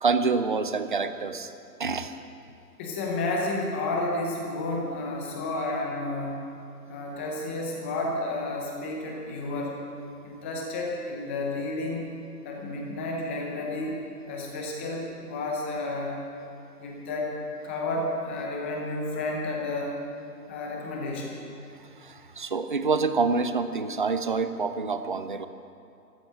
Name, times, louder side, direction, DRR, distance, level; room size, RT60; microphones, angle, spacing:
voice 1, 0.0-1.5 1.8-2.1 22.0-25.5, right 4 dB, 35° right, 10 dB, 0.4 m, -27 dB
voice 2, 2.8-6.4 6.9-9.7 10.2-12.1 12.4-14.0 14.3-16.1 16.8-17.4 17.6-20.0 20.5-21.4, left 2 dB, 10° left, -1 dB, 0.6 m, -31 dB
13.0 x 12.0 x 7.4 m, 2.6 s
figure-of-eight pair, 140°, 49 cm